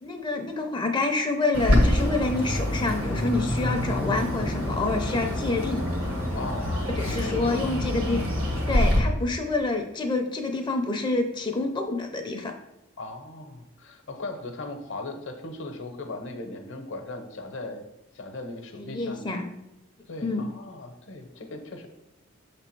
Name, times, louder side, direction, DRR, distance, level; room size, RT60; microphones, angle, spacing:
voice 1, 0.0-5.8 7.0-8.2 8.7-12.5 18.8-19.4 20.2-20.4, left 3 dB, 20° left, 4 dB, 0.5 m, -27 dB
Bird, 1.5-9.0, left 1 dB, 80° right, 1.5 m, -26 dB
voice 2, 6.3-7.7 13.0-17.8 18.1-19.3 20.1-21.9, left 2 dB, 60° left, 5 dB, 0.8 m, -38 dB
6.5 x 3.4 x 4.5 m, 0.90 s
head